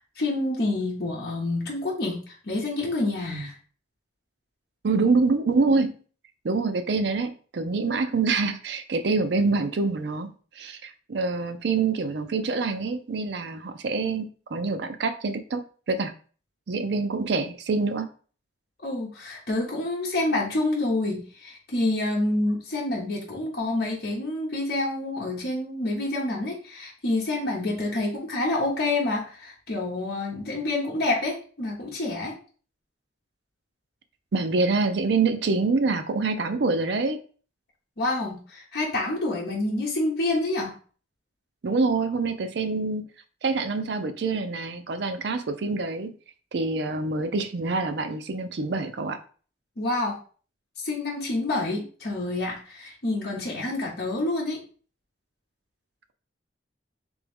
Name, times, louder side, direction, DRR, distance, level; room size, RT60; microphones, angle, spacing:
voice 1, 0.0-3.5 18.8-32.3 38.0-40.7 49.8-50.2 50.8-54.6, left 2 dB, 55° left, -3 dB, 0.9 m, -28 dB
voice 2, 4.8-6.0 6.4-10.3 10.6-15.6 15.9-16.1 16.7-18.1 34.3-37.2 41.6-43.1 43.4-46.1 46.5-49.2, right 3 dB, 65° right, 9 dB, 0.5 m, -26 dB
3.5 x 3.0 x 3.4 m, 0.40 s
head